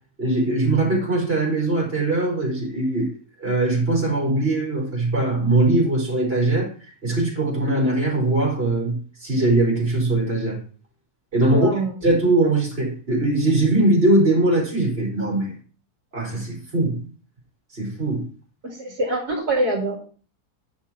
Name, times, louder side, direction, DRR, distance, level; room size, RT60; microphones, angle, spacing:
voice 1, 0.2-3.1 3.4-6.7 7.0-10.6 11.3-11.7 12.0-15.5 16.1-17.0 17.7-18.2, right 2 dB, 40° right, 4.5 m, -21 dB
voice 2, 11.5-12.0 18.6-20.0, right 1 dB, 80° right, 3.3 m, -24 dB
10.5 x 5.9 x 5.6 m
omnidirectional pair, 1.7 m